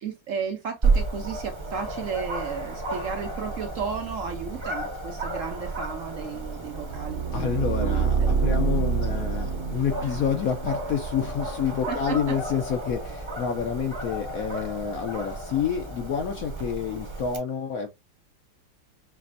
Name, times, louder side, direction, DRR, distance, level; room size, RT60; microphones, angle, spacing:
voice 1, 0.0-8.3 11.9-12.3, right 6 dB, 75° right, 0.7 m, -34 dB
Dog, 0.8-17.4, right 3 dB, 20° right, 0.7 m, -32 dB
sound 1, 6.7-11.7, right 5 dB, 55° right, 1.0 m, -27 dB
voice 2, 7.3-17.9, left 8 dB, 65° left, 0.9 m, -28 dB
5.9 x 3.1 x 2.6 m
omnidirectional pair, 2.1 m